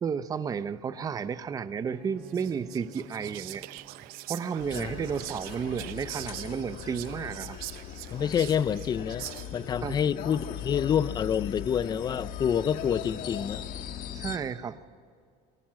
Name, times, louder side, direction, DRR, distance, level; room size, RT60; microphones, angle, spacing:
voice 1, 0.0-3.7 4.3-7.6 9.8-10.0 14.1-15.0, right 6 dB, 20° right, 13 dB, 0.6 m, -32 dB
Bowed string instrument, 1.9-5.5, equal, ahead, 2.7 m, -53 dB
Whispering, 2.2-9.8, right 18 dB, 65° right, 0.6 m, -43 dB
sound 1, 4.6-14.4, left 10 dB, 60° left, 1.6 m, -39 dB
voice 2, 8.1-13.6, left 8 dB, 25° left, 18 dB, 0.4 m, -28 dB
22.0 x 18.0 x 7.5 m, 2.2 s
cardioid pair, 160°, 16 cm